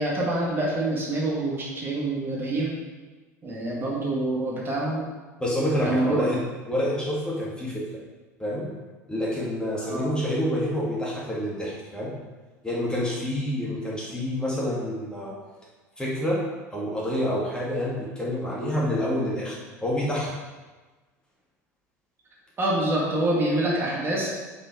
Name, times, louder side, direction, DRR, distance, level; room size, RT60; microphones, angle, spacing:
voice 1, 0.0-2.7 3.4-5.0 5.8-6.1 9.8-10.1 22.6-24.3, right 1 dB, 25° right, -4 dB, 2.2 m, -26 dB
voice 2, 5.4-6.4 6.7-7.8 8.4-8.7 9.1-12.1 12.6-15.3 16.0-16.4 16.7-19.6 19.8-20.3, equal, 10° left, -5 dB, 2.0 m, -27 dB
6.6 x 5.7 x 4.8 m, 1.3 s
figure-of-eight pair, 70°, 9 cm